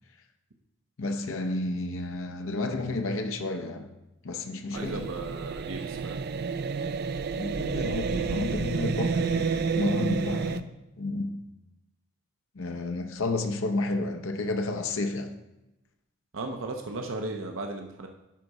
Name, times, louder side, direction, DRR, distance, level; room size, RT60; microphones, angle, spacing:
voice 1, 1.0-3.9 4.2-5.1 7.4-10.7 11.0-11.4 12.5-15.4, left 2 dB, 75° left, 0.7 m, -31 dB
sound 1, 4.7-10.6, right 5 dB, 50° right, 0.3 m, -30 dB
voice 2, 4.7-6.2 16.3-18.1, right 2 dB, 70° right, 0.7 m, -36 dB
10.0 x 4.0 x 4.7 m
head